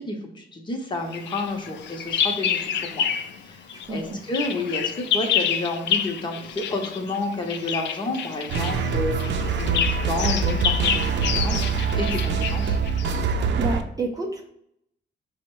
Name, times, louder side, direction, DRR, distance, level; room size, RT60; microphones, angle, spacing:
voice 1, 0.0-3.1 3.4-11.7 12.0-12.8, left 2 dB, 25° left, 3 dB, 0.7 m, -30 dB
Bird vocalization bird call bird song, 1.1-3.4 3.7-13.2, left 8 dB, 80° left, 0.4 m, -28 dB
voice 2, 3.9-4.2 13.6-14.4, right 2 dB, 20° right, 0 dB, 0.4 m, -29 dB
sound 1, 8.5-13.8, right 5 dB, 85° right, 0.5 m, -24 dB
5.2 x 2.1 x 4.5 m, 0.76 s
wide cardioid pair, 170°, 18 cm